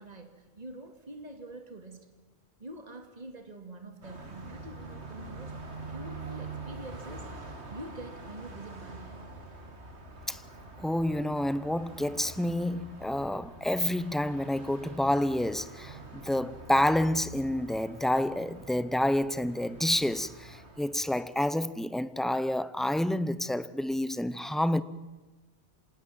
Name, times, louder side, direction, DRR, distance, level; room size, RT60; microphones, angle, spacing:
voice 1, 0.0-2.1 2.6-5.5 5.9-9.1, right 1 dB, 40° right, 2.5 m, -45 dB
Car passing by, 4.0-21.2, right 2 dB, 80° right, 2.8 m, -45 dB
Piano, 7.0-15.0, right 4 dB, 60° right, 2.6 m, -57 dB
voice 2, 10.8-24.8, left 1 dB, ahead, 0.6 m, -29 dB
26.5 x 19.0 x 7.6 m
omnidirectional pair, 1.1 m